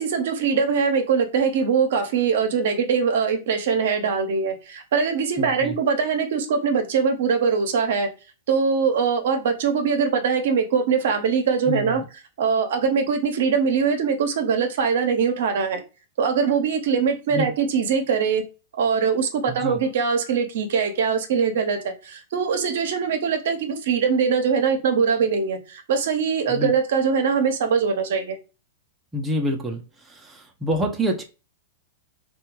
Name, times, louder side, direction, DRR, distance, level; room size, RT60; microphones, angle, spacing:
voice 1, 0.0-8.1 8.5-12.0 12.4-15.8 16.2-18.4 18.7-28.4, right 6 dB, 70° right, 0.6 m, -22 dB
voice 2, 5.4-5.7 11.7-12.0 17.3-17.5 19.5-19.8 26.5-26.7 29.1-31.2, equal, 15° right, 0.5 m, -27 dB
2.7 x 2.2 x 2.9 m
hypercardioid pair, 115°, 0 cm